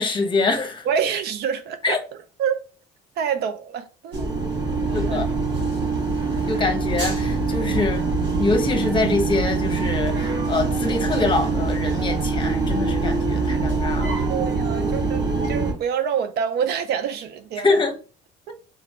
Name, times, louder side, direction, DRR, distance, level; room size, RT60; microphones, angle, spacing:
voice 1, 0.0-0.9 1.8-2.0 4.9-5.3 6.5-8.1 8.4-14.2 17.6-17.9, left 3 dB, 30° left, 1.0 m, -24 dB
voice 2, 0.8-2.0 2.4-2.6 3.2-4.3 5.1-5.3 14.3-17.7 18.5-18.6, right 7 dB, 75° right, 0.7 m, -26 dB
sound 1, 4.1-15.7, right 3 dB, 90° right, 2.4 m, -24 dB
3.9 x 3.0 x 4.4 m
cardioid pair, 110°, 17 cm